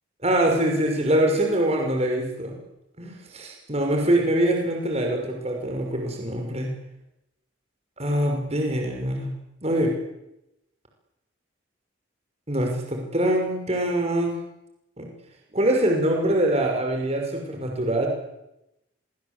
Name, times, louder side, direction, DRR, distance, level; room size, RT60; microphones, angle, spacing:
voice 1, 0.2-2.5 3.0-6.7 8.0-9.3 9.6-10.0 12.5-14.3 15.0-15.1 15.5-18.1, right 1 dB, 30° right, 2 dB, 5.9 m, -24 dB
29.5 x 23.5 x 8.4 m, 0.90 s
head